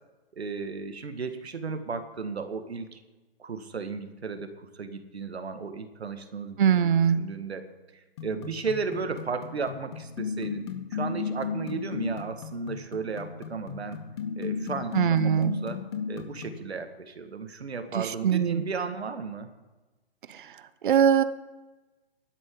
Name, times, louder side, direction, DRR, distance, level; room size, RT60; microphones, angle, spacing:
voice 1, 0.3-3.0 3.4-7.7 7.9-14.0 14.4-14.9 15.2-19.5, right 5 dB, 85° right, 8 dB, 1.8 m, -35 dB
voice 2, 6.6-7.2 14.9-15.6 18.2-18.6 20.3-20.5 20.8-21.2, right 8 dB, 55° right, 13 dB, 0.9 m, -21 dB
sound 1, 8.2-16.7, left 5 dB, 25° left, 1.0 m, -35 dB
16.0 x 12.0 x 3.9 m, 1.1 s
hypercardioid pair, 160°, 31 cm